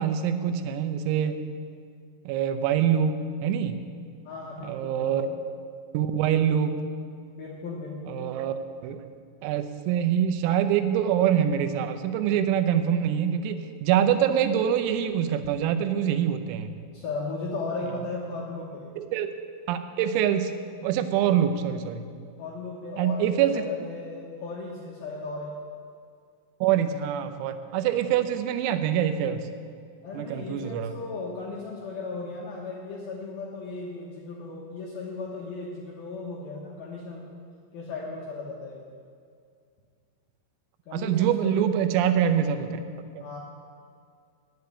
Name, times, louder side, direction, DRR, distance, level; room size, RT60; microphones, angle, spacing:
voice 1, 0.0-1.4 2.3-3.8 4.6-5.3 5.9-6.8 8.1-9.0 9.4-16.7 19.0-19.3 19.7-20.5 20.8-22.1 23.0-23.6 26.6-29.5 30.1-30.9 40.9-42.8 43.1-43.2, right 9 dB, 90° right, 9 dB, 3.4 m, -25 dB
voice 2, 4.3-5.4 7.4-8.3 16.9-18.9 22.4-25.5 27.9-28.1 30.0-37.2 37.7-38.8 40.9-41.6 43.2-43.4, left 3 dB, 75° left, -3 dB, 2.3 m, -36 dB
9.5 x 8.0 x 9.4 m, 2.2 s
omnidirectional pair, 5.9 m